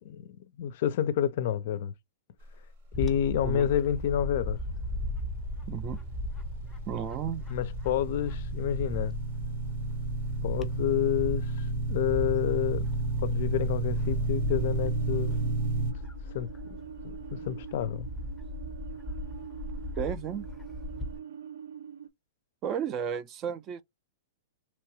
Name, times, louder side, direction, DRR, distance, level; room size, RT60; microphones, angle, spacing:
voice 1, 0.0-1.9 3.0-4.6 7.5-9.2 10.4-12.9 13.2-15.7 16.3-16.8 17.0-18.1, left 10 dB, 55° left, 0.4 m, -29 dB
Bird / Wind, 2.9-21.2, left 1 dB, 5° left, 0.6 m, -37 dB
sound 1, 5.1-15.9, right 3 dB, 60° right, 0.9 m, -32 dB
voice 2, 5.7-6.0 6.9-7.4 20.0-20.5 22.6-23.8, right 8 dB, 30° right, 0.3 m, -33 dB
sound 2, 14.3-22.1, right 8 dB, 90° right, 0.6 m, -44 dB
3.0 x 2.3 x 2.9 m
hypercardioid pair, 145°, 0 cm